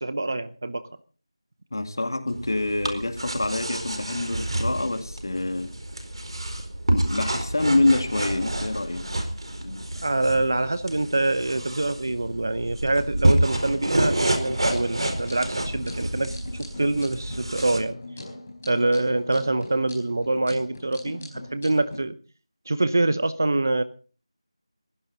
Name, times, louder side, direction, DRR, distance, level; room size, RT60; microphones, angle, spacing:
voice 1, 0.0-0.8 10.0-17.9 18.7-22.2 22.7-23.8, right 2 dB, 30° right, 0.8 m, -25 dB
voice 2, 1.7-5.7 6.9-9.1 9.6-9.8, left 2 dB, 40° left, 2.2 m, -26 dB
sound 1, 2.3-17.8, right 1 dB, 55° right, 4.3 m, -28 dB
sound 2, 14.4-22.0, left 2 dB, 15° left, 4.8 m, -41 dB
21.0 x 16.0 x 4.0 m
figure-of-eight pair, 180°, 3 cm